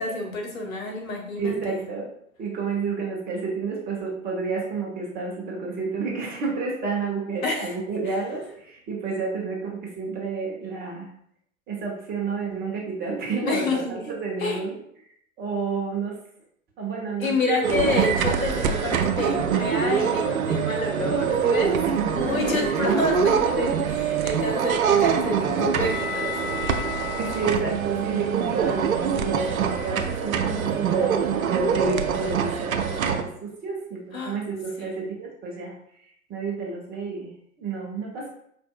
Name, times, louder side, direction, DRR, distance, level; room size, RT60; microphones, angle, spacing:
voice 1, 0.0-1.9 7.4-7.7 8.1-8.2 13.5-13.9 14.4-14.7 17.2-21.8 22.1-26.4 34.1-34.4 34.8-35.1, left 3 dB, 75° left, 1 dB, 1.0 m, -28 dB
voice 2, 1.4-2.1 2.4-11.1 11.7-14.8 15.4-16.2 16.8-18.0 22.2-22.9 25.3-25.7 27.2-35.7 36.3-38.3, right 4 dB, 20° right, -3 dB, 0.9 m, -30 dB
sound 1, 17.6-33.2, right 7 dB, 80° right, 0.5 m, -24 dB
5.0 x 2.6 x 2.3 m, 0.70 s
figure-of-eight pair, 100°, 41 cm